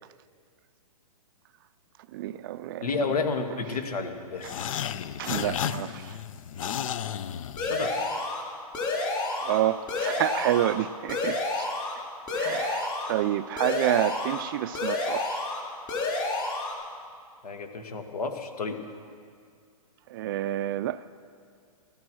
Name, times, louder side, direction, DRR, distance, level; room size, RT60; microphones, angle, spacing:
voice 1, 2.1-2.9 5.2-6.2 9.4-11.7 12.4-15.5 20.1-21.1, right 13 dB, 35° right, 0.4 m, -29 dB
voice 2, 2.8-4.6 7.6-7.9 17.4-18.8, left 4 dB, 80° left, 2.1 m, -31 dB
sound 1, 4.4-8.1, left 9 dB, 60° left, 0.6 m, -33 dB
sound 2, 7.6-8.4 8.7-9.6 9.9-10.7 11.1-11.9 12.3-13.1 13.6-14.4 14.7-15.6 15.9-16.7, left 2 dB, 20° left, 3.1 m, -29 dB
16.0 x 13.5 x 6.3 m
hypercardioid pair, 140°, 19 cm